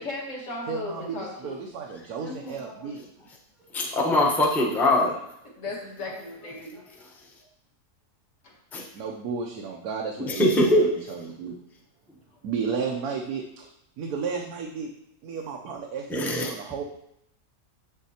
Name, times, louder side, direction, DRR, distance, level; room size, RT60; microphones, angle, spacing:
voice 1, 0.0-1.6 5.6-7.0 8.4-8.5, left 2 dB, 55° left, -3 dB, 2.0 m, -36 dB
voice 2, 0.7-3.0 8.9-11.5 12.4-13.7 14.0-14.9 15.2-16.8, right 5 dB, 90° right, 1 dB, 1.2 m, -33 dB
voice 3, 2.2-2.9 3.7-5.2 8.7-8.8 10.2-10.9 16.1-16.5, left 1 dB, ahead, -1 dB, 0.7 m, -23 dB
7.2 x 7.2 x 2.8 m, 0.78 s
omnidirectional pair, 1.6 m